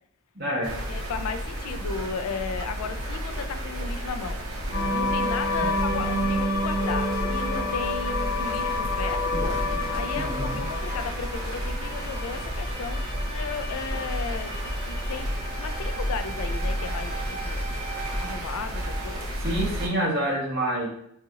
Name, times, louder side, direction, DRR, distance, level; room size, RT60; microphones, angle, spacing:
voice 1, 0.3-0.8 10.1-10.6 19.4-20.9, right 1 dB, 45° right, -3 dB, 1.0 m, -27 dB
sound 1, 0.6-19.9, equal, 85° right, 0.7 m, -31 dB
voice 2, 0.9-4.4 4.9-14.6 14.9-15.3 15.6-17.6 18.1-19.3, left 5 dB, 90° left, 9 dB, 0.3 m, -35 dB
sound 2, 4.7-19.2, left 2 dB, 65° left, 0.9 m, -31 dB
3.9 x 2.4 x 2.8 m, 0.71 s
head